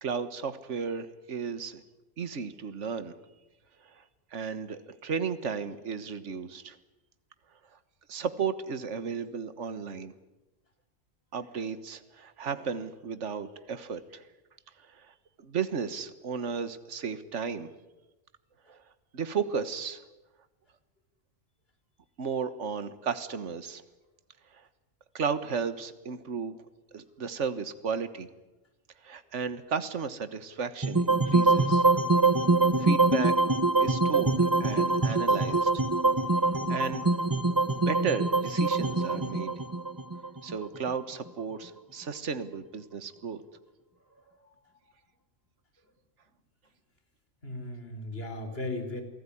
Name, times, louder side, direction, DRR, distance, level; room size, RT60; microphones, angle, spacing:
voice 1, 0.0-1.8 2.2-3.1 3.8-4.0 4.3-6.8 7.7-7.8 8.1-10.1 11.3-14.3 14.8-17.7 18.7-18.8 19.1-20.0 22.2-23.8 24.5-24.7 25.1-26.6 26.9-28.3 29.0-31.8 32.8-33.4 33.8-35.8 36.7-37.0 37.7-39.5 40.4-43.4, right 6 dB, 70° right, 12 dB, 1.7 m, -34 dB
sound 1, 30.8-41.0, right 3 dB, 20° right, 0.9 m, -24 dB
voice 2, 44.1-44.8 47.4-49.0, left 2 dB, 50° left, 7 dB, 4.5 m, -38 dB
28.5 x 18.5 x 10.0 m, 1.0 s
omnidirectional pair, 1.3 m